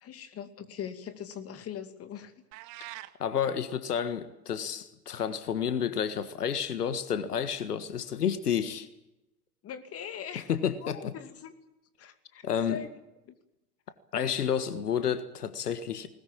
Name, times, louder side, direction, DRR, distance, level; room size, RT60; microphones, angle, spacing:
voice 1, 0.0-2.3 9.6-10.5 10.8-11.5 12.0-12.4 12.7-12.9 13.3-13.4, left 8 dB, 30° left, 2.4 m, -41 dB
sound 1, 2.5-3.2, right 16 dB, 40° right, 1.5 m, -43 dB
voice 2, 3.2-8.9 10.5-11.1 12.4-12.8 14.1-16.1, left 8 dB, 75° left, 1.7 m, -30 dB
20.5 x 20.0 x 8.8 m
figure-of-eight pair, 90°, 46 cm